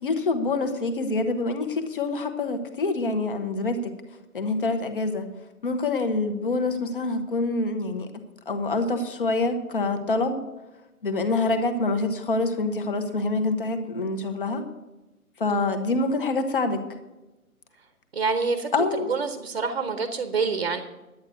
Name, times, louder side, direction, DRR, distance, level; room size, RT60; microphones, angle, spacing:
voice 1, 0.0-3.9 4.3-5.3 5.6-8.1 8.5-10.4 11.0-14.6 15.4-16.8 18.7-19.1, left 3 dB, 35° left, 7 dB, 1.2 m, -26 dB
voice 2, 18.1-18.7 19.1-20.8, right 4 dB, 40° right, 8 dB, 0.9 m, -26 dB
11.0 x 9.0 x 6.4 m, 1.1 s
hypercardioid pair, 170°, 44 cm